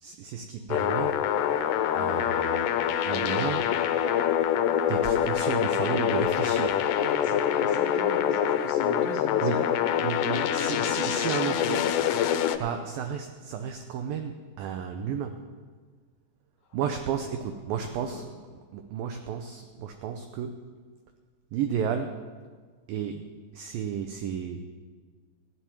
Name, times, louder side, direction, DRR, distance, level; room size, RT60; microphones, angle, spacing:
voice 1, 0.0-1.3 1.9-2.7 3.0-3.8 4.9-7.0 9.4-9.6 10.0-11.8 12.6-15.5 16.7-18.2 18.7-20.6 21.5-22.2 22.9-23.3 23.5-24.6, right 7 dB, 85° right, 6 dB, 2.0 m, -32 dB
sound 1, 0.7-12.6, left 9 dB, 90° left, 2.8 m, -25 dB
voice 2, 7.0-9.7 10.3-12.2 16.6-17.0 17.8-18.2, left 4 dB, 65° left, 0 dB, 2.4 m, -40 dB
16.0 x 5.9 x 9.5 m, 1.6 s
omnidirectional pair, 4.9 m